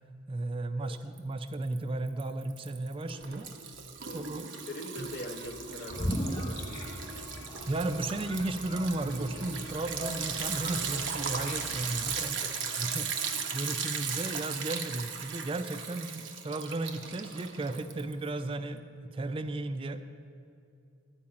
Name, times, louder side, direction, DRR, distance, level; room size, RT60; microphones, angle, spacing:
voice 1, 0.3-3.5 4.1-4.5 5.0-5.1 7.7-12.4 12.8-13.1 13.5-20.0, right 2 dB, 30° right, 10 dB, 0.4 m, -34 dB
Liquid, 1.2-1.8 2.1-18.3, right 6 dB, 85° right, 0.8 m, -37 dB
voice 2, 4.5-6.7 10.9-11.0 12.2-12.5 15.9-16.0, left 1 dB, 55° left, -2 dB, 0.6 m, -42 dB
sound 1, 5.9-12.3, equal, 30° left, 1.1 m, -39 dB
sound 2, 6.7-13.7, left 3 dB, 85° left, 0.8 m, -53 dB
11.5 x 4.8 x 8.5 m, 2.5 s
head